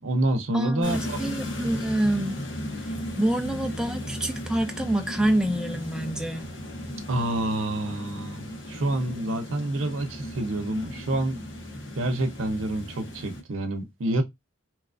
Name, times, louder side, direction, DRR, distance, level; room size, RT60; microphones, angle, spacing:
voice 1, 0.0-1.2 7.1-11.4 11.9-14.2, right 1 dB, 85° right, 0.7 m, -28 dB
voice 2, 0.5-2.4 3.2-6.5, right 1 dB, 5° right, 0.3 m, -26 dB
sound 1, 0.8-13.4, left 1 dB, 75° left, 1.3 m, -36 dB
3.0 x 2.4 x 2.4 m
head